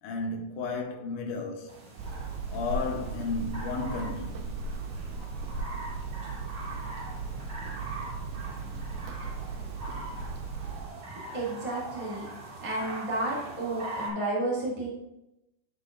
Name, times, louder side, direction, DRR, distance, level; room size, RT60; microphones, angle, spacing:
voice 1, 0.0-1.8 2.5-4.6, left 4 dB, 85° left, 1.8 m, -33 dB
sound 1, 1.7-14.1, right 2 dB, 50° right, 2.0 m, -42 dB
Hammer, 2.0-10.8, right 4 dB, 75° right, 2.0 m, -37 dB
voice 2, 11.1-12.3 12.6-14.9, right 2 dB, 15° right, 1.5 m, -32 dB
11.5 x 5.8 x 2.4 m
omnidirectional pair, 4.6 m